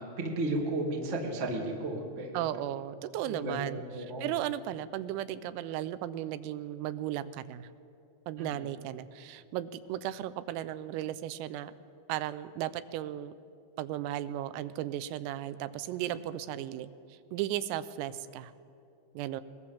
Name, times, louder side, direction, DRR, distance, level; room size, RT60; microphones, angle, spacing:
voice 1, 0.0-2.4 3.2-4.3 8.4-8.6, right 2 dB, 50° right, 0 dB, 0.8 m, -34 dB
voice 2, 2.4-7.7 8.3-11.7 12.1-13.3 13.8-18.5 19.2-19.4, right 12 dB, 85° right, 13 dB, 3.4 m, -35 dB
22.0 x 21.5 x 7.1 m, 2.5 s
omnidirectional pair, 6.0 m